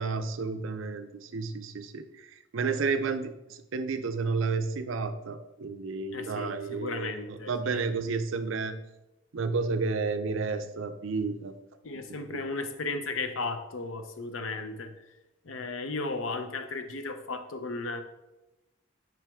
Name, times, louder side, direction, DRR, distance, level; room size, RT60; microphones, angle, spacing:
voice 1, 0.0-8.8 9.3-11.5 12.3-12.4, right 4 dB, 80° right, 9 dB, 0.5 m, -31 dB
voice 2, 6.1-7.8 11.8-14.9 15.4-18.0, left 3 dB, 85° left, 8 dB, 0.7 m, -35 dB
5.9 x 5.1 x 3.5 m, 0.97 s
head